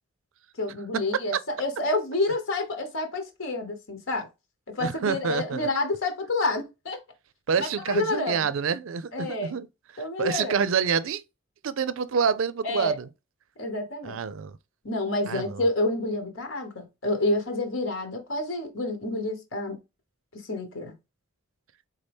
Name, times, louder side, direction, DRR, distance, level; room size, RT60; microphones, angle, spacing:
voice 1, 0.6-4.3 4.7-7.0 7.6-8.5 9.1-9.6 10.0-10.6 12.6-13.0 13.6-14.2 14.8-19.8 20.3-20.9, left 2 dB, 75° left, 1.2 m, -29 dB
voice 2, 4.8-5.7 7.5-9.7 9.9-11.2 11.6-13.1 14.0-14.6 15.3-15.6, right 6 dB, 75° right, 0.5 m, -27 dB
4.1 x 3.7 x 3.4 m
head